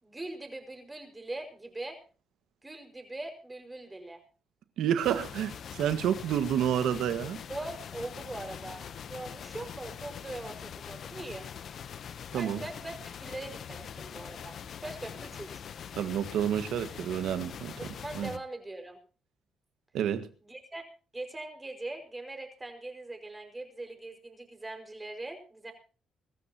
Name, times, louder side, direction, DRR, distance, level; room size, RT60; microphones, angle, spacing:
voice 1, 0.0-2.0 2.6-4.2 7.5-11.5 12.3-15.6 17.9-19.0 20.4-20.9 21.1-25.7, right 2 dB, 15° right, 5.3 m, -41 dB
voice 2, 4.8-7.4 12.3-12.6 15.9-17.8 18.1-18.4 19.9-20.3, right 9 dB, 80° right, 1.6 m, -29 dB
sound 1, 5.0-18.4, left 8 dB, 60° left, 0.8 m, -43 dB
24.5 x 13.5 x 2.9 m
cardioid pair, 90°, 0 cm